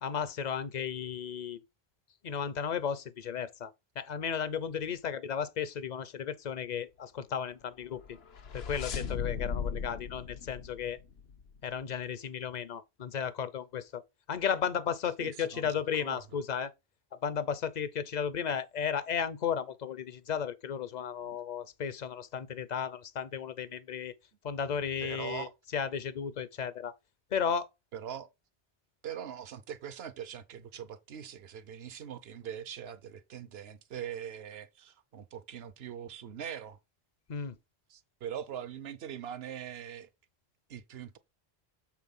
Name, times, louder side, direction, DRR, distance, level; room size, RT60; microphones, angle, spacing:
voice 1, 0.0-1.6 2.2-8.2 8.5-11.0 11.6-14.0 14.3-16.7 17.2-24.1 24.4-26.9 27.3-27.7 37.3-37.5, left 7 dB, 50° left, 0.7 m, -34 dB
sound 1, 7.9-11.6, left 6 dB, 75° left, 1.2 m, -37 dB
voice 2, 15.2-16.4 21.2-21.4 25.0-25.5 27.9-28.3 29.0-36.8 37.9-40.1 40.7-41.2, right 9 dB, 75° right, 1.0 m, -42 dB
7.4 x 3.9 x 5.4 m
omnidirectional pair, 1.1 m